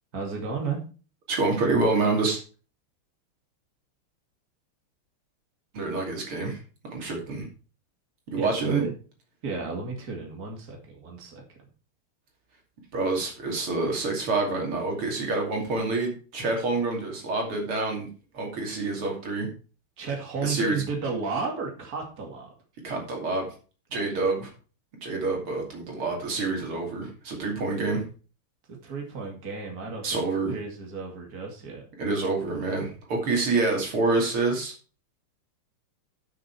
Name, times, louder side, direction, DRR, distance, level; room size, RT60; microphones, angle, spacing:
voice 1, 0.1-0.8 8.4-8.9 9.4-11.4 20.0-22.5 23.9-24.1 28.7-30.2 30.5-31.9, right 4 dB, 45° right, 1 dB, 2.7 m, -33 dB
voice 2, 1.3-2.4 5.7-6.6 6.9-7.5 8.3-8.9 12.9-18.1 18.3-19.5 20.4-20.8 22.8-23.5 23.9-24.5 25.0-28.0 30.0-30.6 32.0-34.7, right 3 dB, 80° right, 0 dB, 3.6 m, -27 dB
10.5 x 6.4 x 4.7 m, 0.37 s
omnidirectional pair, 2.4 m